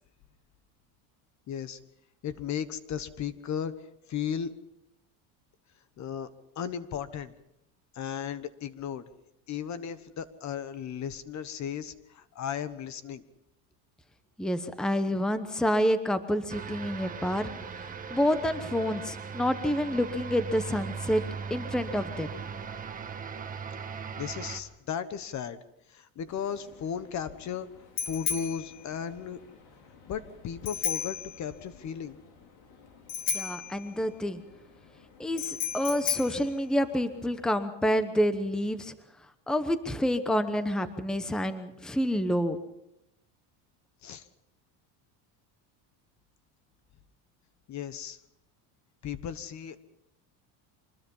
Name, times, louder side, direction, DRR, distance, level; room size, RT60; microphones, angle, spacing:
voice 1, 1.5-1.8 2.2-3.7 4.1-4.5 6.0-6.3 6.6-7.3 7.9-9.1 9.5-13.2 24.2-25.6 25.9-27.7 28.1-29.4 30.1-32.2 44.0-44.3 47.7-48.2 49.0-49.8, left 8 dB, 40° left, 14 dB, 1.2 m, -35 dB
voice 2, 14.4-17.5 18.1-21.2 21.5-22.3 33.3-34.4 35.2-38.9 39.5-42.6, equal, ahead, 10 dB, 1.0 m, -28 dB
sound 1, 16.5-24.6, right 6 dB, 20° right, 1.5 m, -39 dB
Bicycle bell, 26.3-37.4, left 8 dB, 60° left, 4.8 m, -36 dB
25.0 x 20.5 x 5.6 m, 0.85 s
cardioid pair, 140°, 44 cm